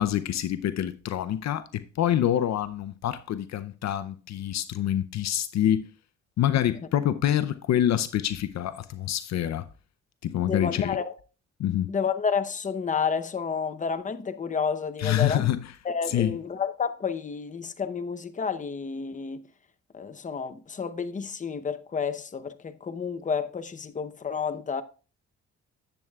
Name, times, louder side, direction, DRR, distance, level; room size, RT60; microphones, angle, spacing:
voice 1, 0.0-5.9 6.4-9.7 10.2-11.0 11.6-11.9 15.0-15.6 16.1-16.3, left 11 dB, 65° left, 0.6 m, -26 dB
voice 2, 10.4-11.2 11.9-15.5 15.8-19.5 19.9-24.8, left 6 dB, 25° left, 0.7 m, -30 dB
10.5 x 8.0 x 2.3 m
cardioid pair, 90°, 30 cm